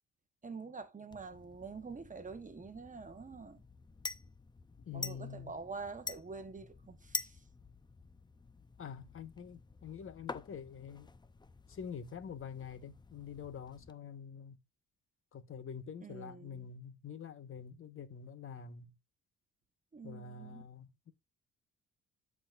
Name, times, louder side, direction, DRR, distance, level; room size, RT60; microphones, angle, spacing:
voice 1, 0.4-3.6 4.9-7.4 16.0-16.7 19.9-20.7, right 4 dB, 25° right, 1.0 m, -46 dB
sound 1, 1.1-13.9, left 3 dB, 15° left, 0.6 m, -48 dB
voice 2, 4.8-5.5 8.8-11.1 11.7-14.6 15.3-19.0 20.0-21.1, left 7 dB, 45° left, 1.2 m, -46 dB
14.0 x 4.9 x 2.4 m
cardioid pair, 90°, 30 cm